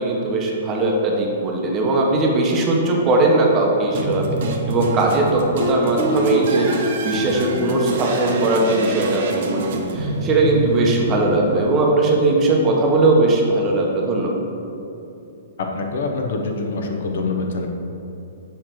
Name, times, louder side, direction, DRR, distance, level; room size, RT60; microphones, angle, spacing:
voice 1, 0.0-9.7 9.9-14.3, right 2 dB, 20° right, -1 dB, 0.8 m, -19 dB
sound 1, 3.9-12.2, right 2 dB, 50° right, 0.8 m, -27 dB
Guitar, 5.6-10.3, equal, 25° left, 0.5 m, -28 dB
voice 2, 15.7-17.7, left 3 dB, 65° left, 3 dB, 0.8 m, -25 dB
7.0 x 3.2 x 5.8 m, 2.8 s
hypercardioid pair, 160°, 0 cm